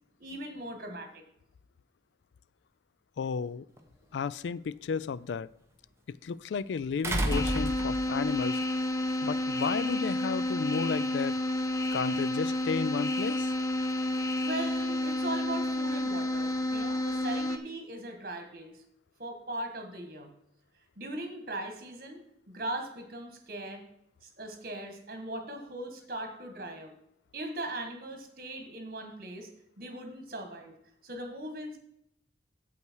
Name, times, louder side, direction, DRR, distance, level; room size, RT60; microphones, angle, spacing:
voice 1, 0.2-1.2 14.4-18.8 19.2-20.3 21.0-22.2 22.5-23.8 24.2-26.9 27.3-29.5 29.8-30.7 31.0-31.8, right 1 dB, 50° right, 5 dB, 1.9 m, -39 dB
voice 2, 3.2-3.6 4.1-5.5 6.2-8.6 9.2-11.3 11.9-13.5, left 6 dB, 80° left, 20 dB, 0.3 m, -33 dB
sound 1, 3.8-3.9 7.0-8.3 9.7-9.8, right 1 dB, 15° right, 1.1 m, -30 dB
sound 2, 7.3-17.6, left 1 dB, 15° left, 0.5 m, -30 dB
8.5 x 8.0 x 4.6 m, 0.77 s
head